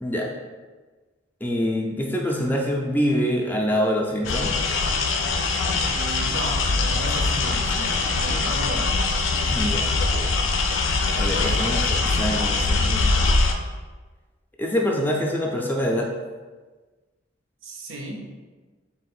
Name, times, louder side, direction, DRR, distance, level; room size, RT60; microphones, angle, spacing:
voice 1, 0.0-0.3 1.4-4.5 9.5-10.4 10.8-13.4 14.6-16.1, equal, 10° left, -1 dB, 0.4 m, -25 dB
sound 1, 4.2-13.5, left 3 dB, 75° left, 0.4 m, -22 dB
voice 2, 5.8-8.9 17.6-18.2, right 2 dB, 80° right, 1 dB, 0.7 m, -34 dB
3.8 x 2.5 x 4.2 m, 1.3 s
head